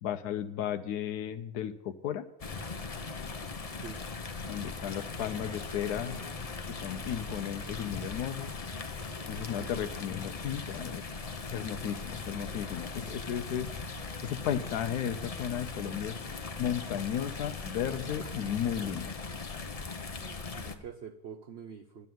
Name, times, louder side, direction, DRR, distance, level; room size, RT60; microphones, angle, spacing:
voice 1, 0.0-2.2 4.5-6.2 6.7-8.5 9.3-11.0 11.5-13.7 14.2-16.2 16.6-19.1, left 9 dB, 70° left, 9 dB, 1.1 m, -34 dB
sound 1, 2.4-20.7, left 4 dB, 45° left, 0.4 m, -39 dB
voice 2, 3.7-4.1 9.4-9.8 20.5-22.1, right 7 dB, 80° right, 10 dB, 0.5 m, -46 dB
11.0 x 8.3 x 9.1 m, 0.98 s
omnidirectional pair, 1.8 m